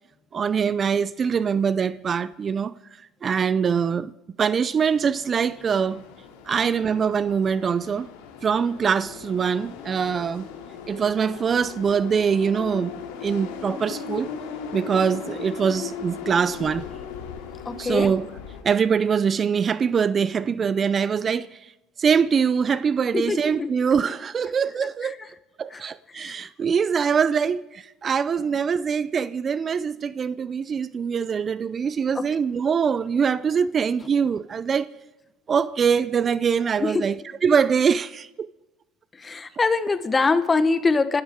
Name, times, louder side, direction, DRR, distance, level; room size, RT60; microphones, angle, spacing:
voice 1, 0.3-2.7 3.2-4.1 4.4-6.0 6.5-8.1 8.4-10.5 10.9-12.9 13.2-14.3 14.7-16.9 17.8-18.3 18.6-21.7 22.0-25.2 25.6-34.9 35.5-38.5, right 6 dB, 35° right, 0.4 m, -23 dB
sound 1, 4.8-18.6, left 7 dB, 90° left, 2.6 m, -38 dB
voice 2, 17.7-18.1 23.1-23.7 26.2-26.3 36.8-37.0 39.2-41.2, left 4 dB, 25° left, 1.2 m, -23 dB
27.5 x 13.0 x 3.7 m
supercardioid pair, 90°, 0 cm